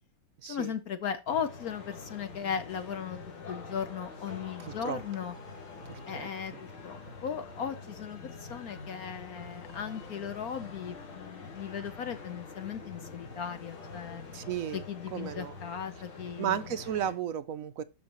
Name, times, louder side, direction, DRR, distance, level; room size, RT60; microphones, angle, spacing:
voice 1, 0.4-3.2 3.5-5.3 6.1-14.2 14.7-16.6, left 7 dB, 60° left, 1.0 m, -37 dB
sound 1, 1.3-17.1, left 3 dB, 85° left, 3.0 m, -45 dB
voice 2, 4.6-5.0 6.1-6.3 14.3-14.8 15.1-15.5 16.4-17.8, right 9 dB, 80° right, 0.7 m, -33 dB
13.0 x 5.3 x 2.9 m
omnidirectional pair, 2.2 m